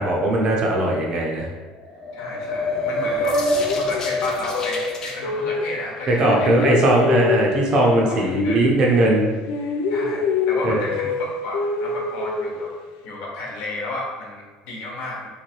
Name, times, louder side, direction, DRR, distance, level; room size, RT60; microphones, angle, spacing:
voice 1, 0.0-1.5 6.1-9.3 10.6-10.8, right 1 dB, 30° right, -1 dB, 0.7 m, -19 dB
sound 1, 1.8-5.2, left 1 dB, 25° left, 0.5 m, -25 dB
voice 2, 2.1-3.4 3.7-6.7 8.1-8.6 9.9-12.7 13.0-15.3, left 2 dB, 55° left, -2 dB, 1.1 m, -32 dB
sound 2, 3.2-6.0 6.3-9.2 9.5-13.0, left 4 dB, 80° left, 0.6 m, -26 dB
3.3 x 3.3 x 4.5 m, 1.3 s
cardioid pair, 180°, 2 cm